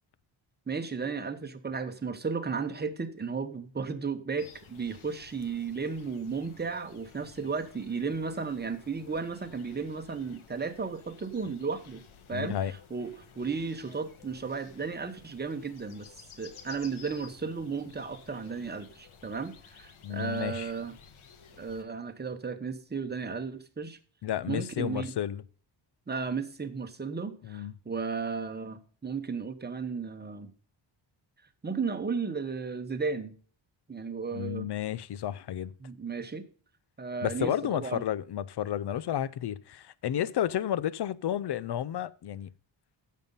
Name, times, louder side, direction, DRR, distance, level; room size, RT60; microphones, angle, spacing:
voice 1, 0.7-12.0 12.3-16.1 16.4-20.9 21.6-24.0 24.5-25.1 26.1-30.5 31.6-33.3 33.9-34.7 35.8-36.5 37.0-38.0, right 5 dB, 20° right, 1.0 m, -34 dB
sound 1, 4.4-21.8, left 6 dB, 90° left, 1.3 m, -54 dB
voice 2, 12.3-12.7 20.0-20.7 24.2-25.4 27.4-27.7 34.3-35.7 37.2-42.5, left 11 dB, 55° left, 0.5 m, -32 dB
9.3 x 7.5 x 5.4 m
wide cardioid pair, 135°, 48 cm